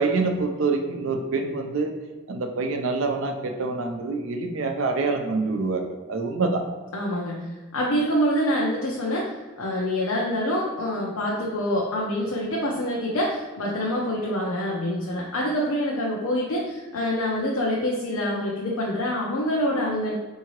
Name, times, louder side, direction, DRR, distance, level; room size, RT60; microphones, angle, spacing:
voice 1, 0.0-1.9 2.3-6.6, right 3 dB, 70° right, 5 dB, 0.5 m, -26 dB
voice 2, 6.9-20.1, equal, 90° left, -3 dB, 0.6 m, -26 dB
4.7 x 2.7 x 3.0 m, 1.3 s
head